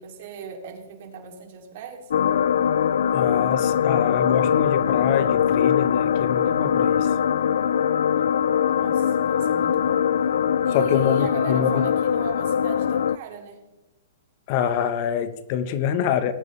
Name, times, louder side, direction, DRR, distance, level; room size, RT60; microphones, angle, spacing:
voice 1, 0.0-2.1 8.7-10.1 10.6-13.6, right 7 dB, 55° right, 2 dB, 3.1 m, -38 dB
sound 1, 2.1-13.2, left 8 dB, 80° left, 0.4 m, -22 dB
voice 2, 3.1-7.1 10.7-11.7 14.5-16.3, left 9 dB, 45° left, 11 dB, 1.2 m, -25 dB
19.0 x 9.3 x 3.4 m, 1.0 s
hypercardioid pair, 145°, 0 cm